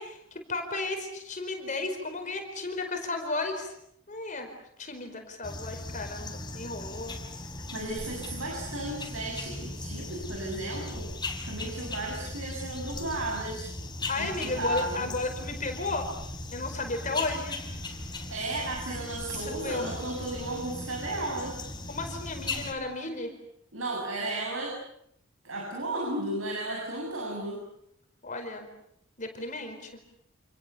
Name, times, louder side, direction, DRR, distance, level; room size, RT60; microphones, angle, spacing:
voice 1, 0.0-3.7 4.1-4.5 4.8-7.1 14.1-16.1 16.5-17.6 19.4-19.9 21.9-23.3 28.2-28.7 29.2-30.0, left 3 dB, 40° left, 5 dB, 4.8 m, -34 dB
sound 1, 5.4-22.7, left 2 dB, 20° left, 4.9 m, -38 dB
voice 2, 7.7-11.1 11.4-13.7 14.2-15.0 18.3-21.6 23.7-24.7 25.4-27.6, right 2 dB, 85° right, -1 dB, 7.4 m, -34 dB
29.0 x 28.5 x 7.0 m, 0.74 s
head